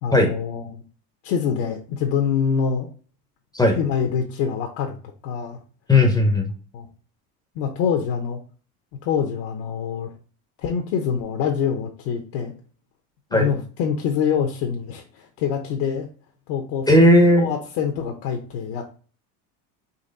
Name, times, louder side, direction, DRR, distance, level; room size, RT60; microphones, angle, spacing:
voice 1, 0.0-0.8 1.2-2.9 3.8-5.0 5.2-5.6 6.7-6.9 7.5-8.4 9.0-10.1 10.6-12.5 13.3-16.1 16.5-16.9 17.4-19.0, left 7 dB, 60° left, 3 dB, 0.8 m, -25 dB
voice 2, 5.9-6.5 13.3-13.5 16.9-17.5, left 1 dB, 10° left, 3 dB, 0.6 m, -15 dB
4.1 x 2.9 x 3.9 m, 0.40 s
supercardioid pair, 125°, 45 cm